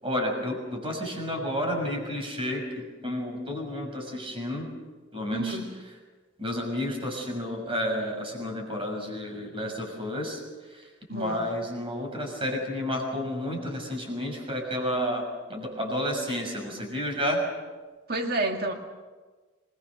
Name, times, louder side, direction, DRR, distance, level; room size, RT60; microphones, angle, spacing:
voice 1, 0.0-4.7 5.1-5.6 6.4-10.4 10.7-17.4, left 1 dB, 30° right, 2 dB, 6.4 m, -31 dB
voice 2, 5.3-5.7 11.1-11.4 18.1-18.7, right 2 dB, 50° right, 3 dB, 2.1 m, -29 dB
26.5 x 22.0 x 6.6 m, 1.3 s
head